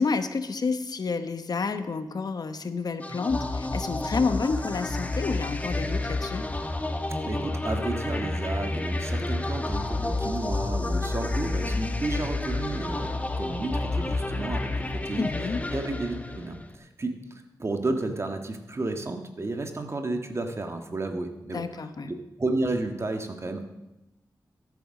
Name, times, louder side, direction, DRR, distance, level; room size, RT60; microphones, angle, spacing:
voice 1, 0.0-6.4 11.6-12.0 15.1-15.6 21.5-22.1, left 4 dB, 60° left, 10 dB, 0.9 m, -29 dB
sound 1, 3.0-16.7, left 2 dB, 20° left, 1.1 m, -30 dB
voice 2, 7.2-15.3 15.7-21.6 22.0-23.6, right 2 dB, 40° right, 5 dB, 1.6 m, -32 dB
13.5 x 8.7 x 6.4 m, 0.97 s
wide cardioid pair, 85°, 7 cm